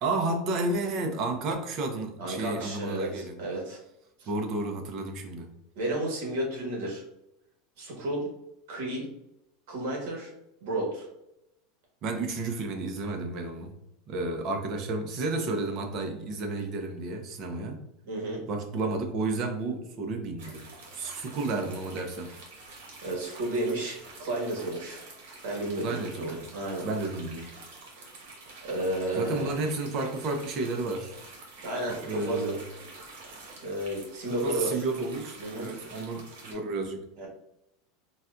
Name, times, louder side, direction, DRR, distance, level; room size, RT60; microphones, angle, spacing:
voice 1, 0.0-3.4 4.3-5.5 12.0-13.7 14.1-17.8 18.5-20.6 20.9-22.3 25.8-26.4 26.8-27.5 29.2-31.1 31.9-32.6 34.3-37.0, right 2 dB, 40° right, 5 dB, 0.5 m, -31 dB
voice 2, 2.2-3.8 4.2-4.3 5.7-7.0 7.8-8.3 8.7-9.1 9.7-10.3 10.6-11.1 18.0-18.4 23.0-23.9 24.2-25.0 25.4-26.9 28.6-29.5 31.6-32.5 33.6-34.8 35.4-35.7 37.2-37.3, right 1 dB, 65° right, -1 dB, 1.4 m, -32 dB
sound 1, 20.4-36.5, right 3 dB, 80° right, 1.1 m, -47 dB
4.0 x 2.2 x 2.4 m, 0.83 s
supercardioid pair, 160°, 0 cm